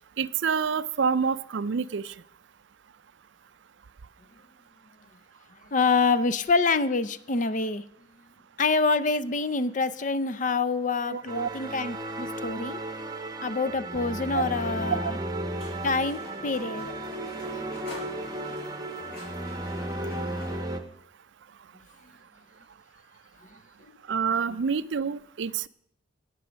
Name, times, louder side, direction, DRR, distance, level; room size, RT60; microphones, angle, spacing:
voice 1, 0.2-2.1 11.1-11.5 14.3-14.4 15.0-15.1 24.1-25.7, right 6 dB, 65° right, 17 dB, 0.4 m, -27 dB
voice 2, 5.7-7.8 8.6-12.8 13.4-15.2 15.8-16.9, left 4 dB, 40° left, 14 dB, 0.6 m, -26 dB
sound 1, 11.3-20.8, right 1 dB, 20° right, 0.9 m, -34 dB
sound 2, 15.5-20.6, equal, 55° left, 5.4 m, -45 dB
17.5 x 7.0 x 6.3 m, 0.72 s
head